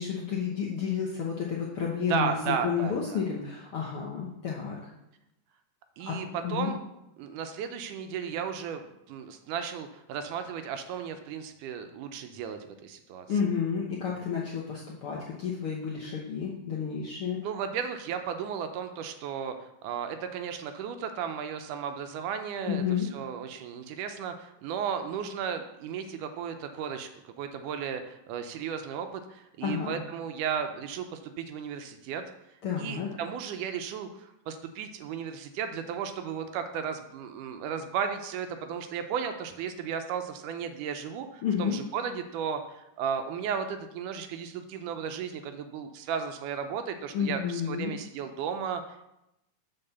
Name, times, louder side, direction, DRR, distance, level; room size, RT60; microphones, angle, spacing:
voice 1, 0.0-4.8 6.0-6.7 13.3-17.4 22.6-23.1 29.6-30.0 32.6-33.1 41.4-41.8 47.1-47.9, left 7 dB, 65° left, -4 dB, 1.3 m, -31 dB
voice 2, 2.1-3.2 6.0-6.8 7.2-13.3 17.4-32.2 32.8-49.0, right 7 dB, 80° right, 7 dB, 2.0 m, -34 dB
7.2 x 4.7 x 6.8 m, 0.86 s
omnidirectional pair, 3.8 m